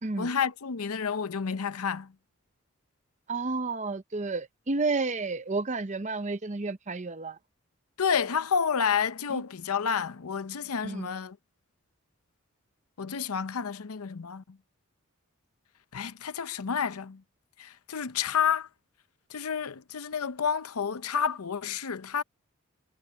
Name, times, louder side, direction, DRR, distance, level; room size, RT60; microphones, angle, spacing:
voice 1, 0.2-2.1 8.0-11.4 13.0-14.6 15.9-17.2 17.6-18.7 19.3-22.2, left 7 dB, 85° left, 0.7 m, -30 dB
voice 2, 3.3-7.4 9.3-9.4 10.8-11.1, right 3 dB, 35° right, 0.7 m, -31 dB
head